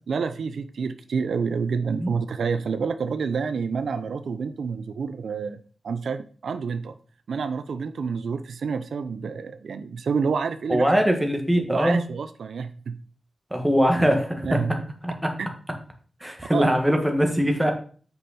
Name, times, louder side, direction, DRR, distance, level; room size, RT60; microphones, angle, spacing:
voice 1, 0.1-7.0 7.3-10.9 11.7-13.0 14.4-14.8 15.4-15.5 16.5-16.7, right 5 dB, 90° right, 10 dB, 0.6 m, -28 dB
voice 2, 10.7-12.0 13.5-14.6 15.0-15.3 16.2-17.7, equal, 5° right, 3 dB, 1.7 m, -22 dB
8.0 x 5.5 x 4.2 m, 0.42 s
wide cardioid pair, 115°, 0 cm